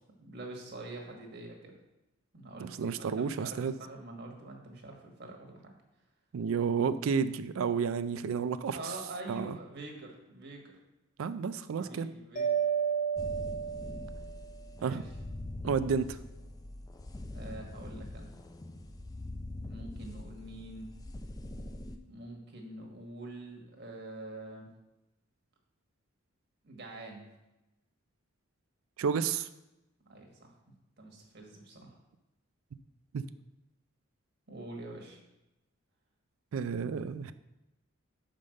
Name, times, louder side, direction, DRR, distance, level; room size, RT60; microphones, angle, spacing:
voice 1, 0.2-1.7 2.3-3.6 3.9-5.7 8.7-10.8 11.8-12.5 14.8-15.0 17.3-18.3 19.7-20.9 22.1-24.7 26.6-27.3 30.1-30.5 31.0-32.0 34.5-35.2, right 2 dB, 55° right, 1 dB, 1.5 m, -45 dB
voice 2, 2.6-3.7 6.3-8.8 9.3-9.6 11.2-12.1 14.8-15.0 15.6-16.2 29.0-29.5 33.1-33.3 36.5-37.3, right 6 dB, 80° right, 12 dB, 0.4 m, -31 dB
Mallet percussion, 12.4-14.4, right 7 dB, 40° left, 0.9 m, -31 dB
sound 1, 13.2-22.0, left 1 dB, 20° left, 0.4 m, -43 dB
5.4 x 5.2 x 6.4 m, 0.96 s
head